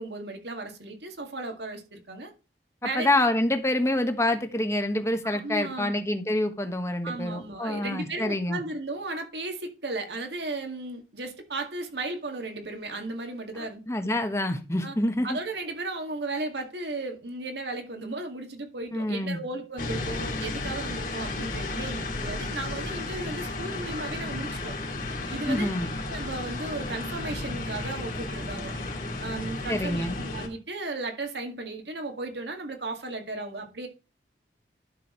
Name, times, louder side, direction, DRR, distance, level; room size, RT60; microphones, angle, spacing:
voice 1, 0.0-2.3 2.8-3.1 5.3-5.9 7.0-13.8 14.8-15.0 15.2-24.8 25.3-25.7 26.1-28.7 29.2-33.9, right 2 dB, 75° right, 2.1 m, -35 dB
voice 2, 2.9-8.6 13.9-15.4 18.9-19.4 25.5-25.9 29.7-30.2, left 1 dB, 15° left, 1.2 m, -27 dB
sound 1, 19.8-30.5, left 2 dB, 50° left, 2.5 m, -33 dB
11.5 x 6.3 x 3.2 m
head